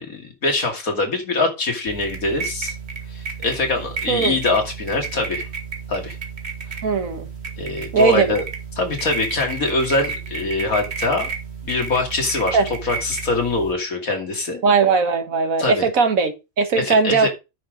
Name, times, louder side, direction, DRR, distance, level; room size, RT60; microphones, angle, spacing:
voice 1, 0.0-2.7 3.1-5.5 5.9-6.2 7.6-8.4 8.8-11.3 11.6-14.6 15.6-15.9 16.7-17.3, left 3 dB, 85° left, 3.0 m, -23 dB
sound 1, 1.9-13.7, right 5 dB, 50° right, 1.9 m, -32 dB
voice 2, 4.1-4.4 6.8-7.3 7.9-8.4 12.5-12.7 14.6-17.3, right 4 dB, 75° right, 1.8 m, -19 dB
9.3 x 5.6 x 5.1 m
omnidirectional pair, 1.4 m